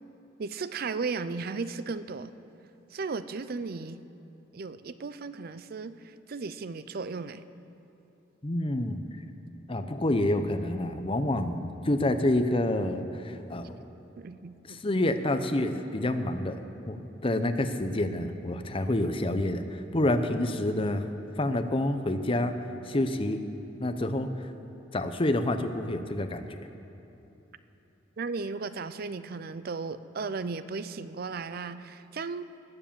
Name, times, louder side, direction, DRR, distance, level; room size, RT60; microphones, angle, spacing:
voice 1, 0.4-2.3 2.9-4.0 4.5-7.4 14.2-14.8 28.2-32.5, right 4 dB, 55° right, 13 dB, 0.5 m, -35 dB
voice 2, 8.4-9.0 9.7-13.8 14.7-16.6 16.9-21.1 21.4-22.6 22.8-23.4 23.8-24.5 24.9-26.7, left 1 dB, 30° left, 8 dB, 0.7 m, -28 dB
19.5 x 7.5 x 7.3 m, 3.0 s
head